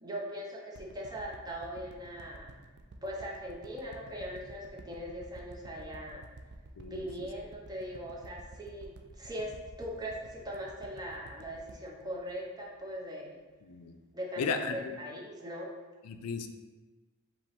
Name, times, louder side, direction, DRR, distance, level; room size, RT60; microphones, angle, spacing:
voice 1, 0.0-2.5 3.0-6.2 6.8-13.4 14.1-15.7, equal, 20° right, -2 dB, 0.8 m, -40 dB
sound 1, 0.7-13.1 13.5-13.6, right 2 dB, 50° right, 0.4 m, -51 dB
voice 2, 6.8-7.1 13.6-14.0 14.4-14.9 16.0-16.5, left 5 dB, 85° left, 7 dB, 0.4 m, -35 dB
5.1 x 2.9 x 3.5 m, 1.3 s
head